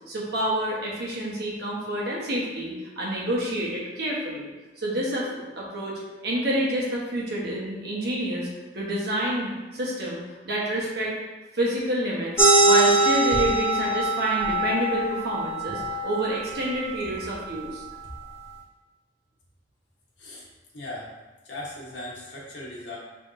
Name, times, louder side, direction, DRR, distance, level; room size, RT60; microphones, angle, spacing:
voice 1, 0.1-4.5 4.8-8.5 8.7-11.1 11.5-17.8, right 1 dB, 65° right, -4 dB, 1.2 m, -28 dB
sound 1, 12.4-17.5, right 2 dB, 15° left, 0.8 m, -23 dB
voice 2, 20.7-21.1 21.4-23.0, left 1 dB, 80° left, -5 dB, 1.3 m, -38 dB
5.7 x 3.4 x 2.6 m, 1.1 s
head